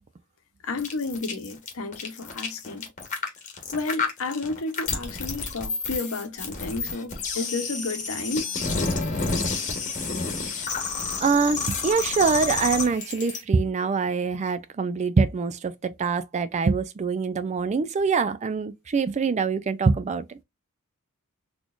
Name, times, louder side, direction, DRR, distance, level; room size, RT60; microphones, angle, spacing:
voice 1, 0.6-2.8 3.7-8.5, left 3 dB, 65° left, 0.8 m, -31 dB
sound 1, 0.8-13.4, left 4 dB, 35° left, 1.2 m, -30 dB
voice 2, 11.2-20.2, right 5 dB, 30° right, 0.3 m, -24 dB
4.1 x 3.1 x 2.4 m
head